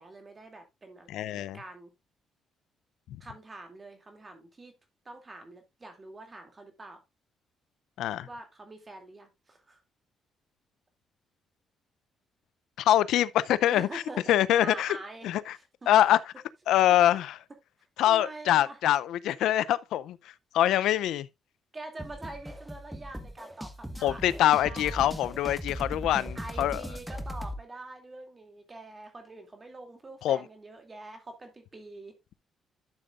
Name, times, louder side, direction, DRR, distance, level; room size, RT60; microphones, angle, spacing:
voice 1, 0.0-1.1 1.4-1.9 3.2-4.8 5.0-7.0 8.2-9.8 13.7-14.2 14.6-15.3 15.6-15.7 18.0-18.8 21.7-25.1 26.3-32.2, right 2 dB, 30° right, 2.5 m, -45 dB
voice 2, 1.1-1.6 3.1-3.2 8.0-8.3 12.8-14.0 14.3-15.0 15.2-15.4 15.9-16.2 16.7-17.4 18.0-20.2 20.5-21.3 24.0-26.8 30.2-30.4, left 12 dB, 85° left, 0.5 m, -24 dB
sound 1, 22.0-27.6, equal, ahead, 1.4 m, -39 dB
12.0 x 6.7 x 2.5 m
cardioid pair, 90°, 0 cm